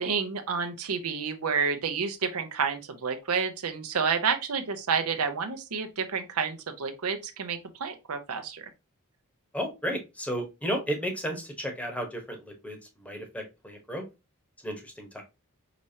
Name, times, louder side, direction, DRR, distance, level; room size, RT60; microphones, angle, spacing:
voice 1, 0.0-8.6, right 6 dB, 80° right, 0.7 m, -29 dB
voice 2, 9.5-14.0 14.6-15.2, equal, 5° left, 1.0 m, -33 dB
5.0 x 3.2 x 2.7 m
head